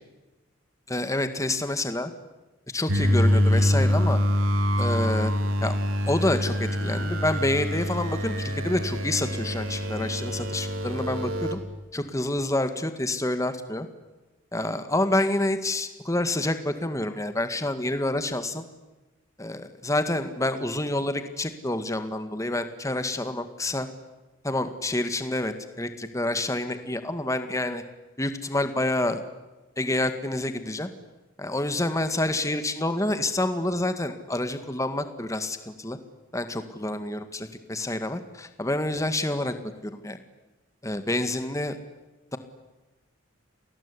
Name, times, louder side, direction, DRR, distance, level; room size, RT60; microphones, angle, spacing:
voice 1, 0.9-2.1 2.7-4.2 4.8-5.3 5.6-5.8 6.1-11.6 11.9-13.9 14.5-18.6 19.4-23.9 24.4-27.8 28.2-29.2 29.8-30.9 31.4-36.0 36.3-39.5 39.8-40.2 40.8-41.8, left 1 dB, 15° left, 9 dB, 2.0 m, -28 dB
sound 1, 2.9-11.5, equal, 80° right, 3.8 m, -25 dB
29.0 x 20.0 x 10.0 m, 1.1 s
head